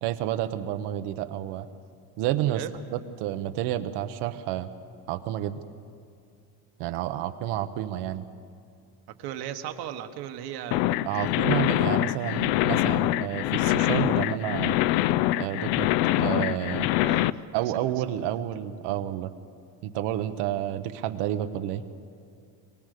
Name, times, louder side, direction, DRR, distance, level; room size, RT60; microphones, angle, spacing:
voice 1, 0.0-1.7 2.2-2.6 2.9-4.7 5.1-5.6 6.8-8.3 11.0-14.8 15.4-15.9 16.2-16.9 17.5-19.3 19.8-21.8, right 12 dB, 85° right, 9 dB, 1.1 m, -30 dB
voice 2, 9.2-11.4 17.0-17.9, right 11 dB, 65° right, 7 dB, 1.4 m, -37 dB
sound 1, 10.7-17.3, left 16 dB, 75° left, 0.5 m, -24 dB
23.0 x 18.5 x 6.7 m, 2.5 s
cardioid pair, 170°, 40 cm